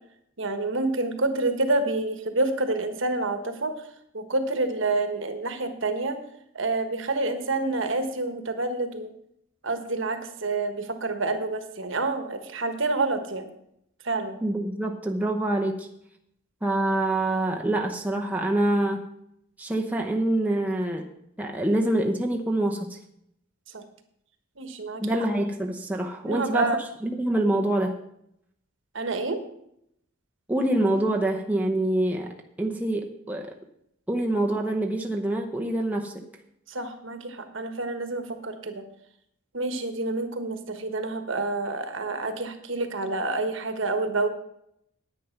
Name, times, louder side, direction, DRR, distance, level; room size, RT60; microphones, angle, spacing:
voice 1, 0.4-3.8 4.1-6.2 6.5-9.1 9.6-13.5 14.0-14.4 23.7-23.8 24.6-25.1 26.2-26.8 28.9-29.4 36.7-38.8 39.5-44.3, right 2 dB, 60° right, 8 dB, 1.3 m, -28 dB
voice 2, 14.4-15.9 16.6-19.1 19.6-21.1 21.4-23.0 25.0-26.8 27.0-27.9 30.5-33.6 34.1-36.2, right 1 dB, 5° right, 1 dB, 0.8 m, -26 dB
9.9 x 9.3 x 5.8 m, 0.74 s
head